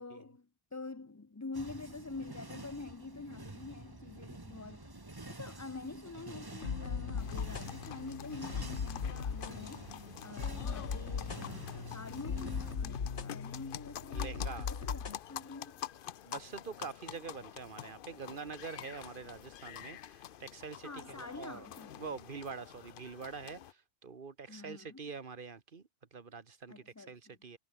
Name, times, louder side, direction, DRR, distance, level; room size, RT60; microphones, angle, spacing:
voice 1, 0.0-5.0 5.3-15.8 20.8-22.0 24.5-25.1 26.7-27.4, left 3 dB, 20° left, 0.6 m, -46 dB
sound 1, 1.5-12.8, right 2 dB, 20° right, 1.4 m, -49 dB
sound 2, 6.6-15.2, left 6 dB, 75° left, 1.8 m, -39 dB
sound 3, 7.2-23.7, left 10 dB, 55° left, 0.7 m, -48 dB
voice 2, 14.1-14.7 16.2-20.9 21.2-21.7 22.0-23.6 24.0-25.8 26.1-27.6, right 5 dB, 50° right, 1.6 m, -45 dB
omnidirectional pair, 1.2 m